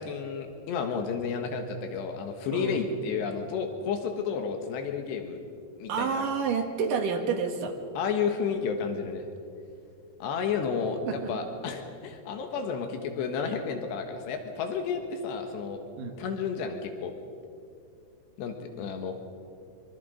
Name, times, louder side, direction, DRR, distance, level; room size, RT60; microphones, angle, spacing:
voice 1, 0.0-5.4 5.8-6.2 8.0-9.3 10.2-15.8 16.2-17.1 18.4-19.1, left 6 dB, 85° left, 5 dB, 3.6 m, -31 dB
voice 2, 2.5-2.9 5.9-7.8 11.1-11.3 16.0-16.2, right 5 dB, 60° right, 3 dB, 3.1 m, -29 dB
24.5 x 24.0 x 5.2 m, 2.5 s
omnidirectional pair, 4.8 m